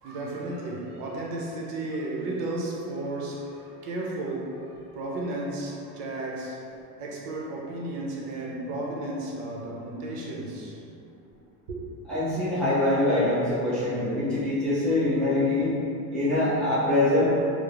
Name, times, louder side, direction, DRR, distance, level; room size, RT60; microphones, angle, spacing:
voice 1, 0.0-4.7 4.9-6.6 7.0-10.8 11.7-11.9, right 2 dB, 80° right, -2 dB, 0.7 m, -33 dB
voice 2, 12.1-15.7 16.1-17.2, left 1 dB, ahead, -12 dB, 0.3 m, -24 dB
3.0 x 2.0 x 2.4 m, 2.6 s
supercardioid pair, 135°, 45 cm